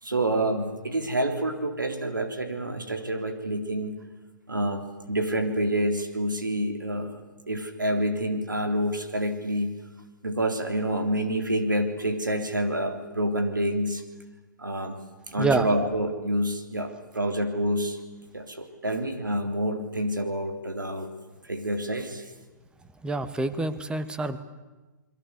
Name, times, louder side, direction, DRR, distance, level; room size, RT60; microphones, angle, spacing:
voice 1, 0.0-3.9 4.5-9.8 10.2-14.0 14.6-15.0 15.3-18.0 18.3-21.1 21.5-22.2, right 1 dB, 85° right, 6 dB, 3.6 m, -28 dB
voice 2, 15.4-15.7 23.0-24.4, right 3 dB, 10° right, 12 dB, 1.5 m, -26 dB
28.0 x 22.0 x 8.1 m, 1.2 s
figure-of-eight pair, 120°, 10 cm